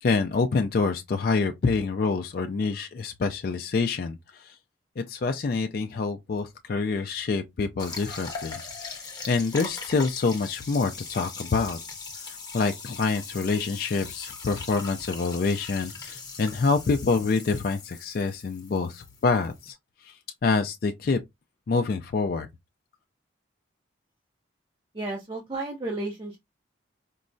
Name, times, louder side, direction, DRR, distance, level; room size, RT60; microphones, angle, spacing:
voice 1, 0.0-4.6 5.0-9.0 9.3-11.8 12.2-19.8 20.0-20.2 20.4-21.2 21.7-22.5, left 4 dB, 50° left, 0.3 m, -26 dB
sound 1, 7.8-19.7, left 4 dB, 20° left, 0.7 m, -40 dB
voice 2, 24.9-26.4, right 2 dB, 25° right, 0.5 m, -32 dB
4.5 x 2.1 x 2.5 m
head